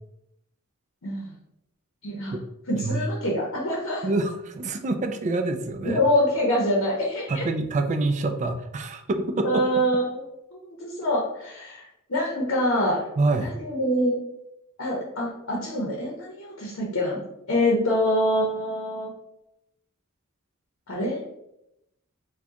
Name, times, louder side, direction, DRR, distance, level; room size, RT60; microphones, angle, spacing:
voice 1, 1.0-1.3 2.0-2.3 2.7-4.1 5.8-7.4 9.4-10.2 10.5-13.0 13.4-14.2 14.8-17.2 17.5-19.1 20.9-21.2, equal, 65° left, -2 dB, 0.7 m, -25 dB
voice 2, 4.0-6.0 7.3-9.6 13.2-13.5, right 2 dB, 35° right, 6 dB, 0.3 m, -26 dB
4.6 x 2.2 x 2.8 m, 0.83 s
head